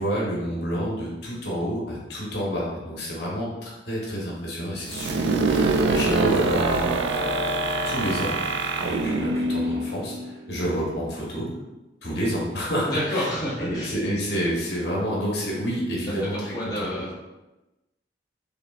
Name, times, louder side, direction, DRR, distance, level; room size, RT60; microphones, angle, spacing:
voice 1, 0.0-6.9 7.8-8.4 8.8-11.5 12.0-13.3 13.6-16.9, equal, 65° left, -5 dB, 1.0 m, -29 dB
sound 1, 4.9-10.6, right 3 dB, 80° right, 0.4 m, -24 dB
voice 2, 12.9-13.9 16.1-17.2, equal, 20° left, -9 dB, 0.9 m, -29 dB
5.0 x 2.6 x 2.4 m, 1.0 s
head